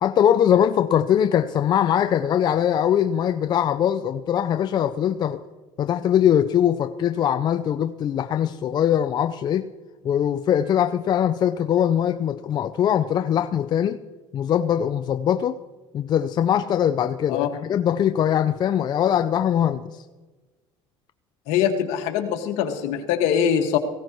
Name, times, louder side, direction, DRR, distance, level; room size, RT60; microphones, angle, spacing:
voice 1, 0.0-5.4 5.8-9.7 10.0-14.0 14.3-15.6 15.9-20.0, left 9 dB, 40° left, 9 dB, 0.5 m, -21 dB
voice 2, 21.5-23.8, left 8 dB, 75° left, 4 dB, 1.8 m, -22 dB
18.5 x 16.5 x 3.1 m, 1.3 s
supercardioid pair, 105°, 11 cm